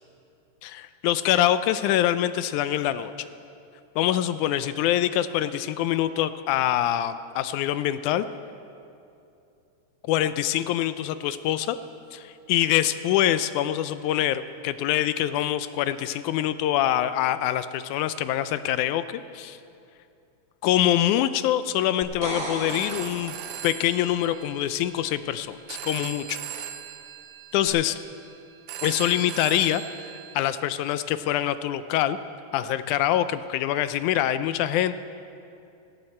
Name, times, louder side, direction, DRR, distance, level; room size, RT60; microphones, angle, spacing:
voice 1, 0.6-3.3 4.0-8.3 10.1-11.8 12.1-19.6 20.6-23.4 23.6-26.4 27.5-28.0 28.8-32.2 32.5-35.0, left 12 dB, 80° left, 13 dB, 1.9 m, -25 dB
sound 1, 22.0-23.9 27.7-27.8, right 1 dB, 25° right, 1.5 m, -35 dB
Telephone, 22.5-30.3, right 10 dB, 75° right, 2.2 m, -40 dB
18.0 x 17.0 x 4.4 m, 2.6 s
omnidirectional pair, 3.7 m